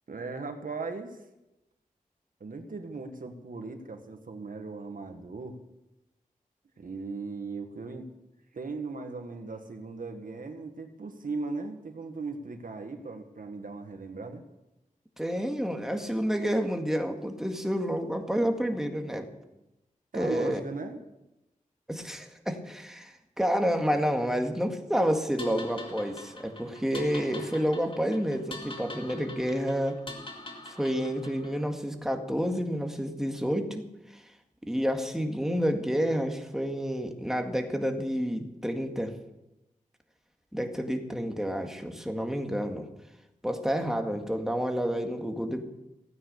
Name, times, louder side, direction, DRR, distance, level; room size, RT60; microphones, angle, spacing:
voice 1, 0.1-1.2 2.4-5.6 6.8-8.1 8.5-14.4 20.1-21.0 28.1-28.2, right 3 dB, 75° right, 6 dB, 1.7 m, -38 dB
voice 2, 15.2-19.3 20.1-20.6 21.9-30.0 30.7-33.8 34.1-34.2 34.6-39.1 40.5-42.8 43.4-45.6, equal, 5° right, 4 dB, 1.9 m, -29 dB
sound 1, 25.4-31.6, left 2 dB, 40° left, 2.2 m, -44 dB
16.5 x 9.6 x 6.8 m, 0.94 s
wide cardioid pair, 70°, 14 cm